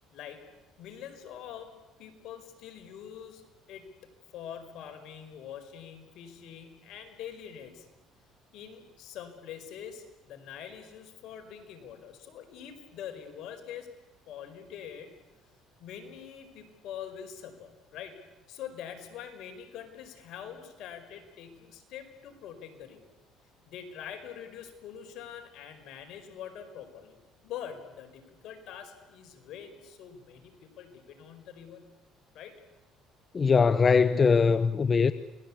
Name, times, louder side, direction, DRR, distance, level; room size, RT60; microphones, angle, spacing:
voice 1, 0.1-0.4 0.8-1.7 2.0-7.9 8.5-13.9 14.3-15.1 15.8-18.2 18.5-23.1 23.7-31.8 32.3-32.6, left 9 dB, 65° left, 4.6 m, -44 dB
voice 2, 33.3-35.1, left 5 dB, 30° left, 0.8 m, -21 dB
29.0 x 20.0 x 8.5 m
cardioid pair, 105°, 0 cm